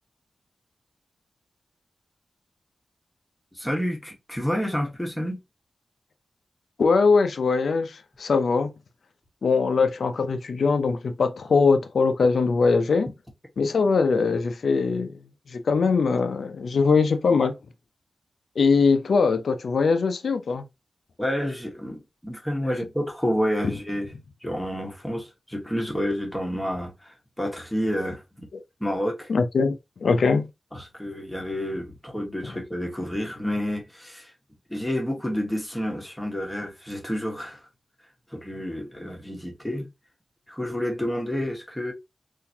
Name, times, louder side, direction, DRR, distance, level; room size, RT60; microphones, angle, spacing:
voice 1, 3.5-5.4 21.2-24.1 24.4-28.5 28.8-29.3 30.7-34.3 34.7-37.7 38.3-39.9 40.5-41.9, equal, 5° left, 1.3 m, -29 dB
voice 2, 6.8-8.7 9.4-13.1 13.6-15.2 15.5-17.6 18.6-20.6 29.3-30.5, left 4 dB, 80° left, 0.5 m, -21 dB
3.9 x 2.6 x 2.7 m
wide cardioid pair, 110°, 0 cm